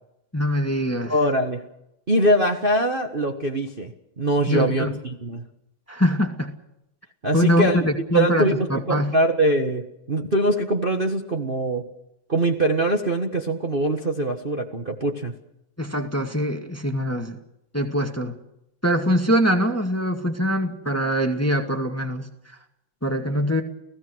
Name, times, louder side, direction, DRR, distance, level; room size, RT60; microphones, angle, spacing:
voice 1, 0.3-1.1 4.5-4.9 5.9-6.5 7.3-9.1 15.8-17.4 17.7-18.3 18.8-22.6 23.0-23.6, equal, 5° left, 5 dB, 1.7 m, -23 dB
voice 2, 1.1-1.6 2.1-5.4 7.2-7.9 8.1-11.8 12.3-15.3, right 1 dB, 25° right, 2 dB, 1.5 m, -23 dB
30.0 x 17.0 x 6.3 m, 0.85 s
omnidirectional pair, 2.4 m